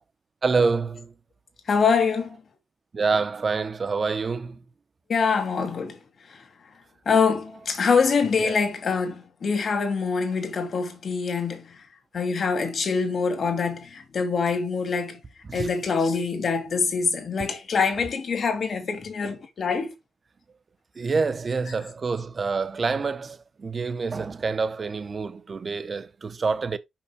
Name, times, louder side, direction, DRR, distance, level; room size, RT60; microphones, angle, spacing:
voice 1, 0.4-1.1 2.9-4.6 8.4-8.6 15.4-15.7 21.0-26.8, right 4 dB, 40° right, 0.9 m, -27 dB
voice 2, 1.7-2.4 5.1-6.0 7.1-11.8 12.1-15.2 15.5-19.9, left 5 dB, 50° left, 2.2 m, -24 dB
5.8 x 5.6 x 3.4 m
cardioid pair, 95°, 0 cm